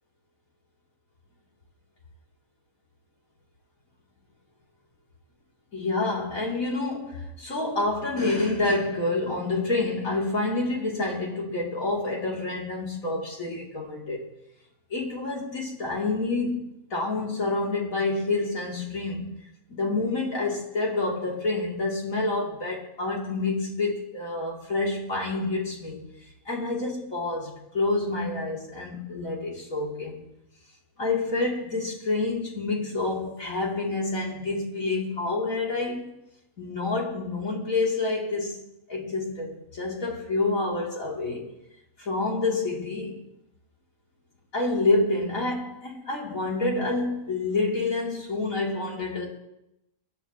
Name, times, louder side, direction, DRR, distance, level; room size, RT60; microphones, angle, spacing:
voice 1, 5.7-14.2 14.9-26.1 26.5-30.3 31.0-36.1 36.6-38.6 38.9-41.5 42.0-43.2 44.5-49.3, left 3 dB, 70° left, 3.6 m, -28 dB
26.0 x 11.0 x 3.1 m
omnidirectional pair, 1.5 m